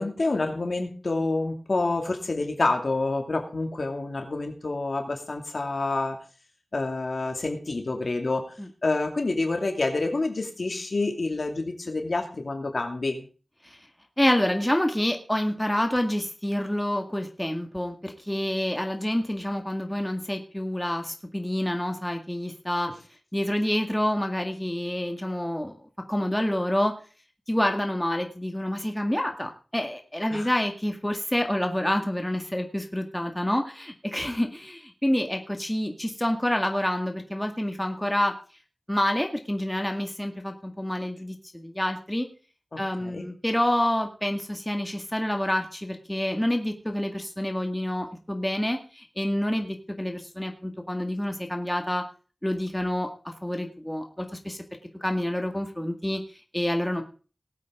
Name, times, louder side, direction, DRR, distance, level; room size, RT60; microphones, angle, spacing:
voice 1, 0.0-6.2 6.7-8.4 8.8-13.3 30.3-30.5 42.7-43.3, left 2 dB, 70° left, 4 dB, 2.5 m, -28 dB
voice 2, 14.2-22.9 23.3-25.8 26.1-26.9 27.5-38.3 38.9-42.3 42.8-52.0 52.4-54.6 55.0-56.2 56.5-57.0, left 1 dB, 10° left, 4 dB, 2.0 m, -28 dB
19.5 x 8.2 x 3.8 m, 0.36 s
wide cardioid pair, 65°, 0 cm